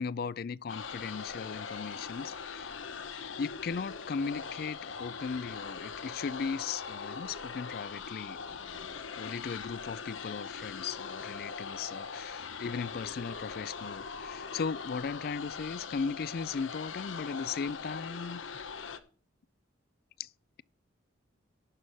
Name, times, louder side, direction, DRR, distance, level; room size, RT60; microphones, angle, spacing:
voice 1, 0.0-2.7 3.1-18.4 18.8-18.9 20.2-20.3, left 5 dB, 50° left, 0.4 m, -37 dB
sound 1, 0.7-19.0, left 5 dB, 80° left, 0.9 m, -41 dB
11.5 x 5.5 x 6.2 m
head